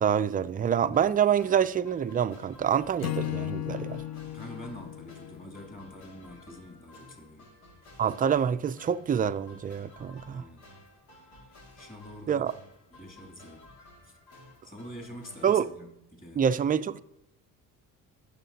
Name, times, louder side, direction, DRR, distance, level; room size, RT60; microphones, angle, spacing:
voice 1, 0.0-4.0 8.0-10.4 12.3-12.5 15.4-15.7 16.4-17.0, right 8 dB, 20° right, 0.4 m, -26 dB
sound 1, 0.9-15.7, left 2 dB, 80° left, 2.4 m, -54 dB
Acoustic guitar / Strum, 3.0-6.3, left 13 dB, 40° left, 0.5 m, -36 dB
voice 2, 4.3-7.5 10.3-10.7 11.8-12.4 12.9-13.7 14.0-14.2 14.6-16.4, equal, 20° left, 2.6 m, -46 dB
15.5 x 6.6 x 2.8 m
supercardioid pair, 80°, 40 cm